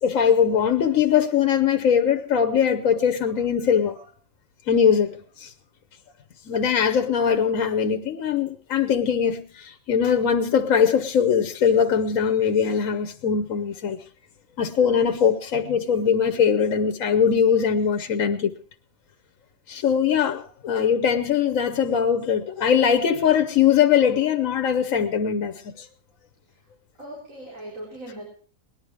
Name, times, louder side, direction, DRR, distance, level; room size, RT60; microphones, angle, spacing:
voice 1, 0.0-4.0 4.7-5.5 6.5-14.0 14.6-18.5 19.7-25.9, left 7 dB, 75° left, 1.3 m, -21 dB
voice 2, 27.0-28.2, right 1 dB, 70° right, 4.8 m, -39 dB
19.0 x 11.0 x 4.8 m
omnidirectional pair, 1.4 m